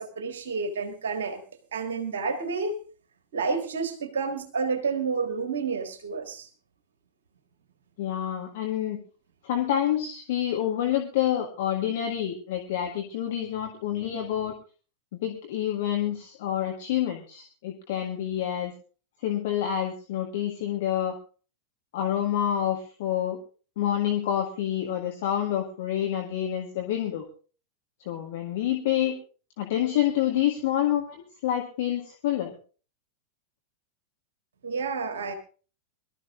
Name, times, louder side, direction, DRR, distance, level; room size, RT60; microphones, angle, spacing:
voice 1, 0.0-1.4 1.7-2.8 3.3-6.5 34.6-35.3, right 4 dB, 65° right, 8 dB, 1.6 m, -30 dB
voice 2, 8.0-9.0 9.4-14.5 15.1-18.7 19.2-21.2 21.9-23.4 23.8-27.3 28.1-29.2 29.6-32.5, left 11 dB, 55° left, 2 dB, 1.8 m, -28 dB
23.0 x 12.5 x 2.5 m, 0.37 s
figure-of-eight pair, 90°, 0 cm